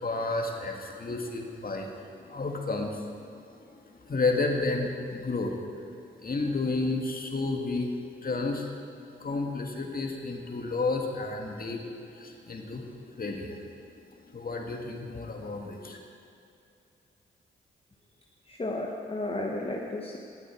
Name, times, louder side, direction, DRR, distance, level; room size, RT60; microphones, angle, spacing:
voice 1, 0.0-3.7 4.0-5.6 6.2-7.9 8.2-8.7 9.2-11.8 12.1-13.7 14.3-16.0, left 3 dB, 45° left, 2 dB, 2.0 m, -31 dB
voice 2, 18.5-20.2, left 2 dB, 30° left, -1 dB, 1.3 m, -33 dB
18.0 x 8.1 x 4.6 m, 2.6 s
supercardioid pair, 45°, 21 cm